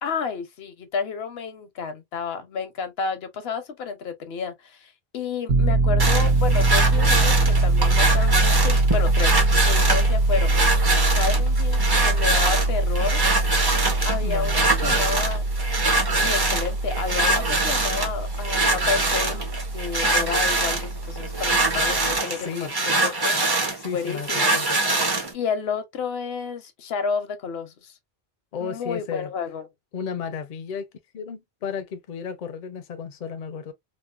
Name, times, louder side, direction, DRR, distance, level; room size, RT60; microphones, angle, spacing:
voice 1, 0.0-9.3 9.6-10.6 11.1-13.2 13.5-15.5 16.1-19.5 19.7-24.5 25.3-27.9 28.6-29.7, left 5 dB, 80° left, 0.9 m, -31 dB
Piano, 5.5-22.2, right 2 dB, 75° right, 0.9 m, -23 dB
sound 1, 6.0-25.3, right 2 dB, 30° right, 0.6 m, -24 dB
voice 2, 14.2-15.1 22.4-22.7 23.8-24.7 28.5-29.3 29.9-30.9 31.1-33.7, left 6 dB, 55° left, 0.6 m, -33 dB
2.9 x 2.1 x 2.3 m
omnidirectional pair, 1.0 m